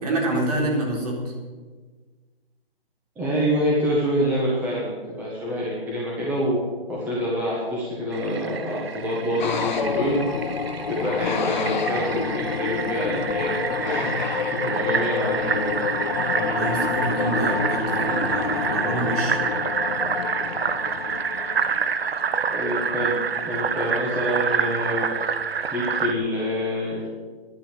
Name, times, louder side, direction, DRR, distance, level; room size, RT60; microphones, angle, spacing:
voice 1, 0.0-1.2 16.4-19.4, right 1 dB, 40° right, -1 dB, 3.8 m, -27 dB
voice 2, 3.1-6.6 6.9-10.3 10.9-13.6 13.8-14.1 14.5-15.8 22.5-23.1 23.4-25.0 25.7-27.1, equal, 5° right, -6 dB, 1.6 m, -26 dB
Fill (with liquid), 8.1-26.1, right 6 dB, 80° right, 1.0 m, -28 dB
sound 1, 9.4-22.4, left 6 dB, 50° left, 0.9 m, -28 dB
11.0 x 11.0 x 7.7 m, 1.4 s
hypercardioid pair, 160°, 30 cm